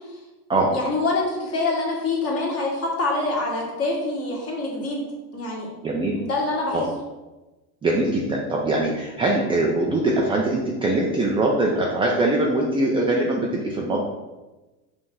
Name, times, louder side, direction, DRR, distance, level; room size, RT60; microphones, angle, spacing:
voice 1, 0.7-5.0 5.3-5.7 6.2-6.8, left 2 dB, 30° left, -3 dB, 1.9 m, -25 dB
voice 2, 5.8-6.2 6.7-6.8 7.8-14.0, right 2 dB, 10° right, -1 dB, 0.4 m, -22 dB
5.4 x 3.6 x 5.4 m, 1.1 s
cardioid pair, 145°, 45 cm